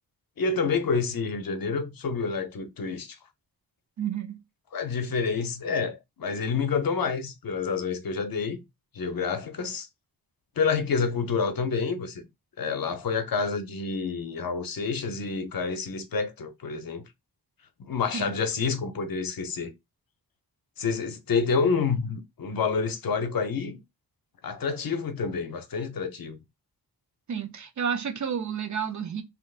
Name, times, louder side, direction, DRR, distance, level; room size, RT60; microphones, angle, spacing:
voice 1, 0.4-3.2 4.7-8.6 8.9-9.9 10.6-12.2 12.6-17.0 17.8-19.7 20.8-23.8 24.4-26.4, left 5 dB, 60° left, 0.7 m, -28 dB
voice 2, 4.0-4.4 18.1-18.4 27.3-29.2, right 7 dB, 50° right, 0.5 m, -30 dB
3.3 x 2.8 x 2.3 m
wide cardioid pair, 125°, 39 cm